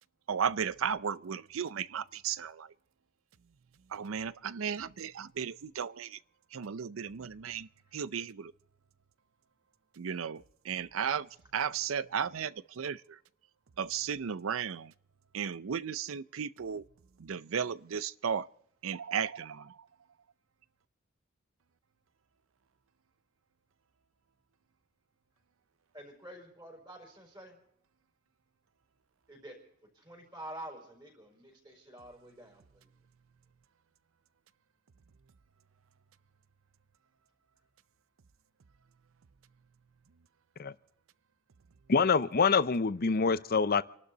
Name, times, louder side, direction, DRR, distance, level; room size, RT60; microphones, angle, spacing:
voice 1, 0.3-2.7 3.9-6.2 6.5-8.5 10.0-13.2 13.8-14.9 15.3-16.8 17.2-18.5 18.8-19.9, right 7 dB, 75° right, 0.5 m, -35 dB
voice 2, 25.9-27.6 29.3-29.6 29.9-32.9, right 1 dB, 20° right, 4.7 m, -48 dB
voice 3, 41.9-43.8, left 5 dB, 45° left, 0.7 m, -26 dB
28.5 x 12.0 x 4.0 m
head